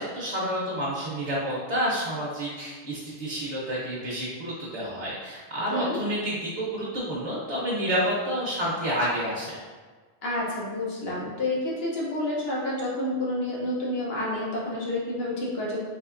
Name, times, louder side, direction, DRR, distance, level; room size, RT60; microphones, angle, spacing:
voice 1, 0.0-9.6, equal, 40° right, -7 dB, 0.7 m, -29 dB
voice 2, 10.2-15.8, left 1 dB, 75° left, -4 dB, 1.1 m, -29 dB
3.4 x 3.1 x 2.5 m, 1.4 s
omnidirectional pair, 1.0 m